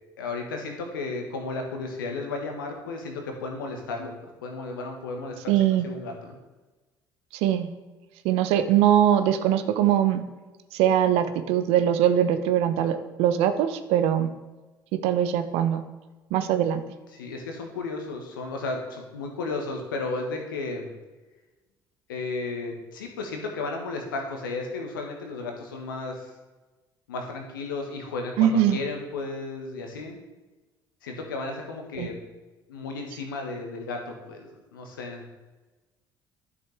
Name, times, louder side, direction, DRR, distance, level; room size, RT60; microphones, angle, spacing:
voice 1, 0.2-5.5 5.8-6.3 17.1-20.9 22.1-26.3 27.1-30.2 31.0-32.2 32.7-35.2, left 3 dB, 80° left, 2 dB, 1.5 m, -34 dB
voice 2, 5.5-5.9 7.3-7.7 8.2-10.2 10.7-14.3 14.9-15.8 16.3-16.8 28.4-28.8 32.0-32.1, right 10 dB, 65° right, 10 dB, 0.9 m, -22 dB
11.5 x 6.8 x 3.5 m, 1.2 s
figure-of-eight pair, 55°, 11 cm